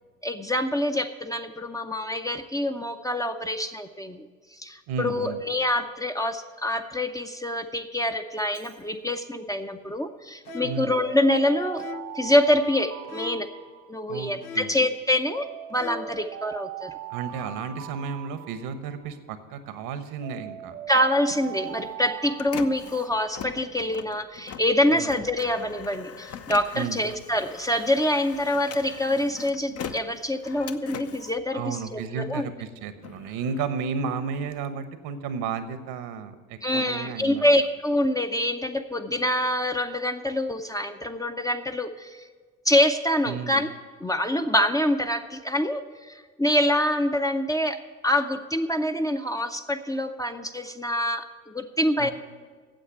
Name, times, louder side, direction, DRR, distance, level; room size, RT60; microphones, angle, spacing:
voice 1, 0.2-4.3 4.6-11.8 12.1-13.5 13.9-16.9 20.9-32.5 36.6-42.2 42.7-43.7 44.0-52.1, left 1 dB, 10° left, 6 dB, 0.6 m, -25 dB
voice 2, 4.9-5.4 10.6-10.9 14.1-14.7 17.1-20.7 24.9-25.1 26.7-27.0 31.5-37.5 43.3-43.6 52.0-52.1, right 6 dB, 65° right, 11 dB, 1.1 m, -33 dB
Alarm, 8.4-8.8 10.5-14.2 15.3-19.1 20.2-23.4, right 10 dB, 85° right, 1.7 m, -40 dB
sound 1, 10.5-10.9 11.8-12.3 13.0-13.6 14.4-14.9 15.7-16.2, left 8 dB, 85° left, 0.5 m, -40 dB
Printer, 20.9-32.3 32.8-34.6, left 7 dB, 40° left, 0.8 m, -42 dB
9.1 x 7.8 x 9.2 m, 1.5 s
hypercardioid pair, 60°, 39 cm